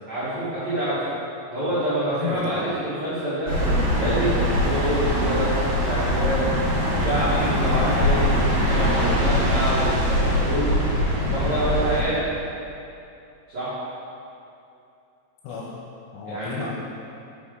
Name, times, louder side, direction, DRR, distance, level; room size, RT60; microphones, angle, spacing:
voice 1, 0.1-1.1 1.5-5.6 5.8-6.4 6.9-10.8 11.3-12.3 13.5-13.7 16.2-16.6, right 1 dB, 90° right, -13 dB, 1.5 m, -26 dB
voice 2, 2.1-2.8 15.4-15.8 16.1-16.7, left 5 dB, 80° left, -3 dB, 3.1 m, -32 dB
sound 1, 3.5-12.0, equal, 60° right, 3.0 m, -22 dB
6.5 x 6.1 x 3.7 m, 2.7 s
omnidirectional pair, 6.0 m